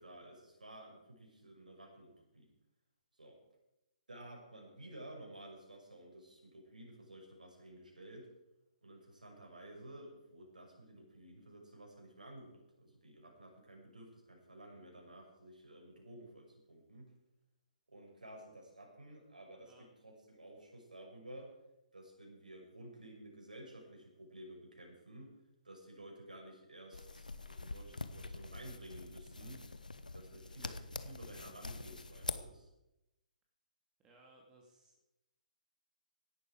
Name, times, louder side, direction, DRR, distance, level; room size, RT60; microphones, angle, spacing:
voice 1, 0.0-2.5 3.2-3.4 4.1-8.3 8.8-17.1 17.9-19.7 20.0-21.5 21.9-25.4 25.6-29.7 30.1-32.7, right 1 dB, 75° right, 0 dB, 6.1 m, -53 dB
sound 1, 26.9-32.4, left 3 dB, 75° left, 1.2 m, -45 dB
voice 2, 34.0-35.0, right 2 dB, 15° right, -1 dB, 2.7 m, -63 dB
17.0 x 11.5 x 5.0 m, 0.92 s
figure-of-eight pair, 130°, 4 cm